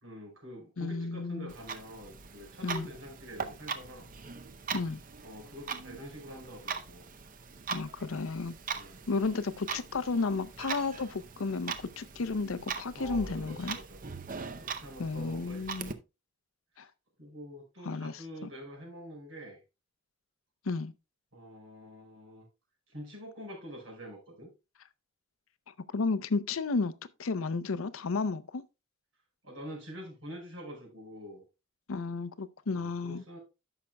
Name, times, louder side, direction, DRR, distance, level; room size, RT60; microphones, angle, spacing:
voice 1, 0.0-4.1 5.2-7.0 8.7-9.0 12.9-14.0 14.6-15.9 17.2-19.6 21.3-22.4 22.9-24.5 29.4-31.4 32.7-33.4, equal, 75° right, 4.9 m, -46 dB
voice 2, 0.8-1.5 2.6-2.9 4.7-5.0 7.7-8.5 9.1-13.8 15.0-15.9 16.8-16.9 17.8-18.2 20.7-20.9 25.9-26.9 27.2-28.6 31.9-33.2, left 4 dB, 85° left, 0.6 m, -32 dB
Clock, 1.5-15.9, right 5 dB, 40° right, 0.6 m, -41 dB
13.5 x 5.9 x 2.2 m
head